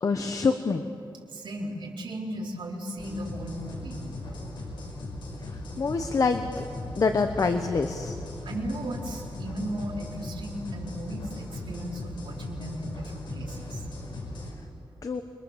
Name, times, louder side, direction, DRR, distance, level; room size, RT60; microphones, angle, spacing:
voice 1, 0.0-0.9 5.5-6.7 7.0-8.2 15.0-15.2, left 4 dB, 45° left, 7 dB, 1.1 m, -26 dB
voice 2, 1.3-4.0 8.1-13.9, right 1 dB, 85° right, -2 dB, 4.6 m, -36 dB
sound 1, 3.0-14.5, left 2 dB, 75° left, 5.1 m, -38 dB
28.0 x 23.5 x 7.4 m, 2.4 s
wide cardioid pair, 165°, 8 cm